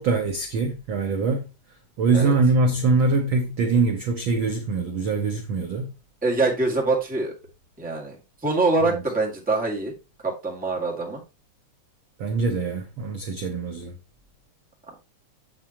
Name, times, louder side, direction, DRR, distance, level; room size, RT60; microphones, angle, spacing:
voice 1, 0.0-1.5 2.0-5.9 8.9-9.0 12.2-13.9, right 3 dB, 70° right, 1.2 m, -23 dB
voice 2, 6.2-7.3 7.8-8.1 8.4-9.9 10.2-11.2, right 3 dB, 5° right, 1.2 m, -24 dB
7.4 x 7.3 x 2.9 m
omnidirectional pair, 3.6 m